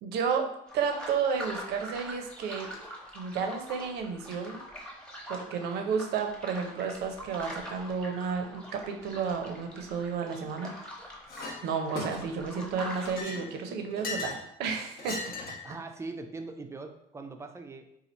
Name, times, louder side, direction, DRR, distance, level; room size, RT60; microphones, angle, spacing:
voice 1, 0.0-2.7 3.1-4.6 5.3-10.7 11.6-14.3 14.6-15.2, right 6 dB, 80° right, 4 dB, 0.6 m, -32 dB
sound 1, 0.7-13.2, equal, 5° left, 0.8 m, -44 dB
Chink clink, 11.3-11.6 11.9-12.5 12.9-14.4 15.0-15.7, left 3 dB, 65° left, 0.8 m, -38 dB
voice 2, 15.6-17.9, right 3 dB, 15° right, 6 dB, 0.3 m, -41 dB
2.8 x 2.4 x 4.2 m, 0.76 s
cardioid pair, 110°, 17 cm